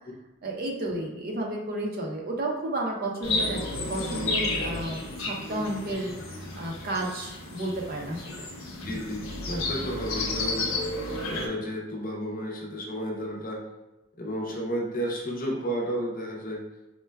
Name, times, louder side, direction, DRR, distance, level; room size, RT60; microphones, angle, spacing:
voice 1, 0.4-8.4 8.8-9.0, right 1 dB, 50° right, 0 dB, 0.5 m, -32 dB
sound 1, 3.2-11.5, left 2 dB, 80° left, 0.7 m, -32 dB
voice 2, 8.8-10.7 11.2-13.6 14.2-16.6, equal, 45° left, -1 dB, 0.6 m, -32 dB
4.3 x 2.2 x 2.2 m, 1.0 s
head